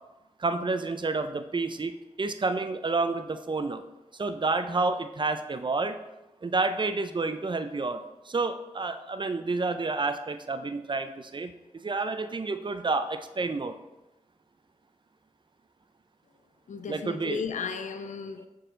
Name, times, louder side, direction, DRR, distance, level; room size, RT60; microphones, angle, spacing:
voice 1, 0.4-3.8 4.2-6.0 6.4-8.0 8.2-11.5 11.8-13.8 16.9-17.4, right 3 dB, 40° right, 0.5 m, -29 dB
voice 2, 16.7-18.5, left 6 dB, 85° left, 0.4 m, -35 dB
6.6 x 3.9 x 3.8 m
cardioid pair, 45°, 12 cm